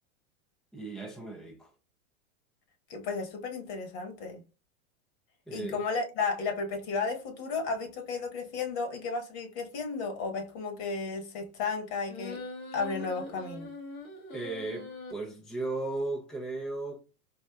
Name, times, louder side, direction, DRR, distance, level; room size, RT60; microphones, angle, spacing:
voice 1, 0.7-1.7 5.5-5.8 14.3-17.0, right 2 dB, ahead, 0.4 m, -36 dB
voice 2, 2.9-4.4 5.5-12.4 12.7-13.7, left 4 dB, 50° left, 1.4 m, -33 dB
sound 1, 12.1-15.1, left 2 dB, 85° left, 1.4 m, -42 dB
4.3 x 2.4 x 2.2 m
hypercardioid pair, 115°, 40 cm